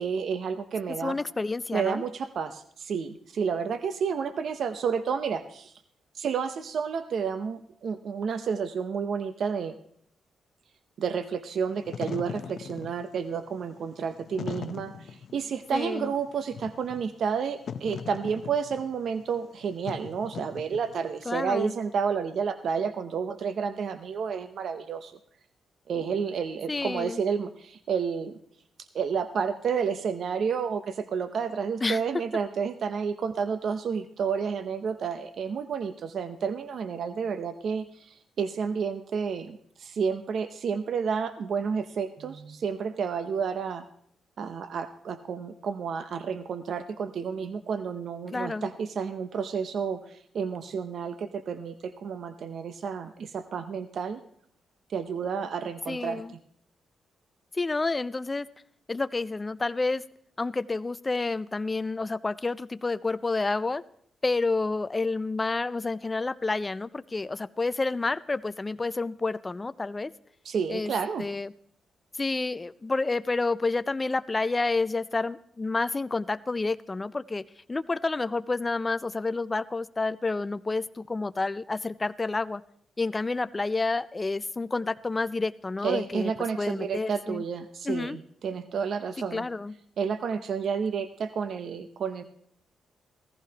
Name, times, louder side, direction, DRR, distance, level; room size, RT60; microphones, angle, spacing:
voice 1, 0.0-1.2 1.7-5.7 6.1-9.7 11.0-25.1 25.9-28.4 28.8-43.8 44.4-54.2 54.9-56.2 70.4-71.3 85.8-89.5 90.0-92.2, right 6 dB, 60° right, 10 dB, 0.6 m, -30 dB
voice 2, 1.0-2.0 15.7-16.1 21.3-21.8 26.7-27.2 31.8-32.0 48.3-48.7 55.9-56.3 57.5-58.5 58.9-60.0 60.4-63.8 64.2-70.1 70.7-70.9 71.2-71.5 72.1-82.6 83.0-86.3 86.6-87.4 87.8-88.2 89.3-89.7, left 3 dB, 20° left, 16 dB, 0.4 m, -29 dB
Wind / Fire, 11.7-21.2, left 7 dB, 60° left, 0.7 m, -40 dB
16.5 x 14.5 x 2.9 m, 0.63 s
cardioid pair, 110°, 0 cm